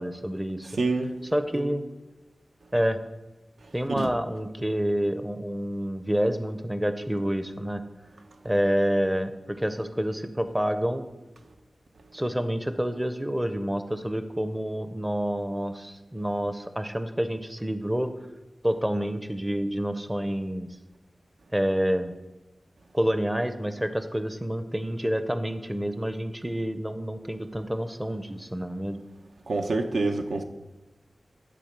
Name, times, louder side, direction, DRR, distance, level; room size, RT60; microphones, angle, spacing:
voice 1, 0.0-0.7 1.3-1.8 2.7-3.0 3.7-7.8 8.4-11.0 12.1-18.1 18.6-20.7 21.5-22.1 22.9-29.0, equal, 10° right, 10 dB, 0.5 m, -28 dB
voice 2, 0.8-1.1 4.0-4.1 29.5-30.4, right 3 dB, 80° right, 5 dB, 0.8 m, -26 dB
10.5 x 4.2 x 6.6 m, 1.1 s
wide cardioid pair, 85°, 0 cm